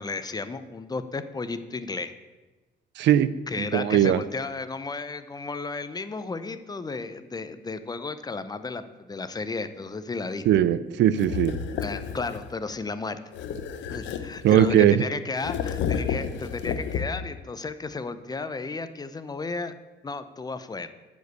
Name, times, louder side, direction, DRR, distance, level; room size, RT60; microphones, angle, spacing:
voice 1, 0.0-2.1 3.5-10.4 11.8-13.2 13.9-19.7 20.0-20.9, left 3 dB, 20° left, 12 dB, 0.6 m, -33 dB
voice 2, 3.0-4.2 10.5-11.6 14.4-15.0, right 11 dB, 75° right, 15 dB, 0.5 m, -20 dB
sound 1, 11.2-12.5 13.3-14.9 15.4-17.4, left 7 dB, 85° left, 0.8 m, -31 dB
10.5 x 5.2 x 8.2 m, 1.2 s
cardioid pair, 115°, 19 cm